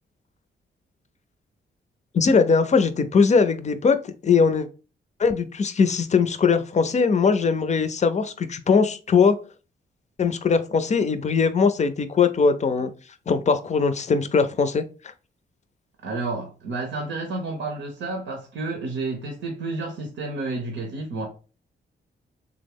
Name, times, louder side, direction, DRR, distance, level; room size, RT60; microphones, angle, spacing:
voice 1, 2.1-4.7 5.2-9.4 10.2-12.9 13.3-14.8, left 5 dB, 35° left, 0.4 m, -20 dB
voice 2, 16.0-21.3, right 3 dB, 85° right, 0.7 m, -30 dB
3.4 x 2.0 x 3.5 m
cardioid pair, 70°, 19 cm